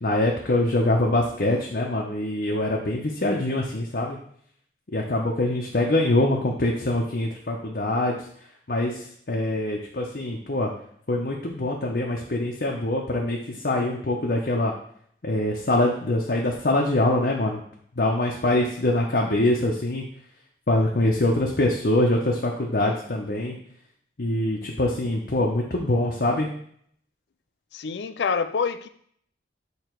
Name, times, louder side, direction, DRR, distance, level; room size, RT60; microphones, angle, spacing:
voice 1, 0.0-4.2 4.9-8.2 8.7-10.7 11.1-13.4 13.6-14.7 15.2-17.6 18.0-20.0 20.7-23.6 24.2-26.5, left 1 dB, 60° left, -2 dB, 0.8 m, -24 dB
voice 2, 27.7-28.9, left 5 dB, 80° left, 11 dB, 0.4 m, -26 dB
6.7 x 3.2 x 4.6 m, 0.63 s
head